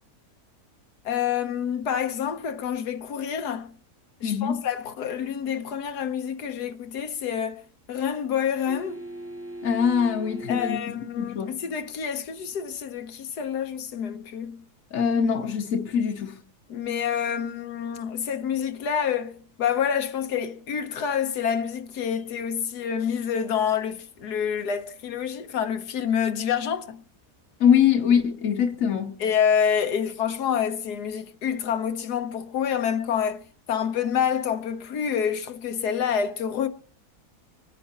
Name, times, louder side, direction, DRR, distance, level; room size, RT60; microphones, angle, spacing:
voice 1, 1.0-3.7 4.2-7.6 7.9-9.0 10.5-14.6 16.7-27.0 29.2-33.4 33.7-36.7, left 8 dB, 80° left, 1.6 m, -27 dB
voice 2, 4.2-4.6 9.6-11.6 14.9-16.4 27.6-29.2, left 7 dB, 60° left, 1.3 m, -23 dB
sound 1, 8.7-11.0 13.6-13.7, right 1 dB, 20° right, 0.4 m, -39 dB
25.5 x 9.7 x 2.9 m
omnidirectional pair, 1.7 m